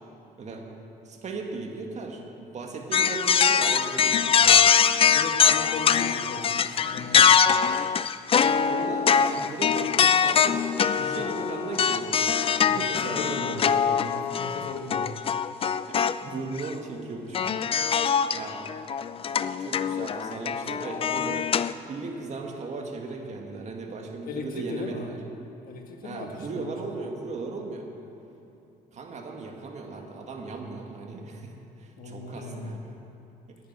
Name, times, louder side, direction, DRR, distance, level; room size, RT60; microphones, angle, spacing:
voice 1, 1.1-4.8 8.6-12.2 12.7-13.7 15.8-18.0 18.3-18.7 19.3-21.5 21.9-25.2 26.0-27.9 28.9-31.5 31.8-33.0 33.5-33.6, right 3 dB, 45° right, 1 dB, 2.1 m, -37 dB
sound 1, 2.9-16.2 16.6-16.7 17.3-21.7, left 7 dB, 35° left, 0.4 m, -23 dB
voice 2, 5.1-7.4 11.0-11.5 12.6-15.1 24.3-25.1 25.6-26.7 32.0-32.8, left 3 dB, 60° left, 4 dB, 1.6 m, -38 dB
10.0 x 9.5 x 10.0 m, 2.9 s
cardioid pair, 110°, 17 cm